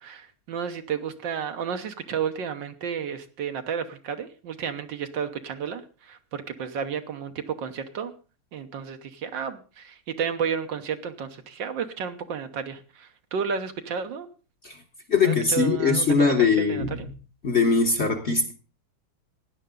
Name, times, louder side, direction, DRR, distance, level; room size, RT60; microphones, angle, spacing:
voice 1, 0.0-8.1 8.5-14.3 15.2-17.1, right 7 dB, 65° right, 8 dB, 1.6 m, -32 dB
voice 2, 15.1-17.0 17.4-18.5, left 4 dB, 40° left, 4 dB, 1.3 m, -21 dB
16.5 x 10.5 x 3.8 m, 0.35 s
omnidirectional pair, 2.2 m